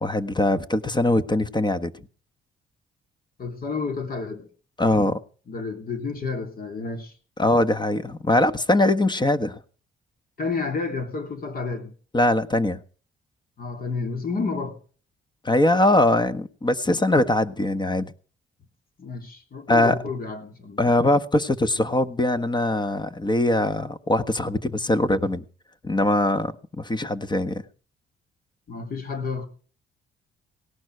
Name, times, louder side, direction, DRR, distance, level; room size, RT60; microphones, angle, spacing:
voice 1, 0.0-1.9 4.8-5.2 7.4-9.6 12.1-12.8 15.4-18.1 19.7-20.0 20.8-25.4 25.8-27.6, left 1 dB, 20° left, 1.5 m, -22 dB
voice 2, 3.4-4.5 5.5-7.2 10.4-11.9 13.6-14.8 19.0-20.8 28.7-29.5, left 4 dB, 45° left, 3.1 m, -30 dB
18.0 x 12.0 x 4.8 m
cardioid pair, 90°, 20 cm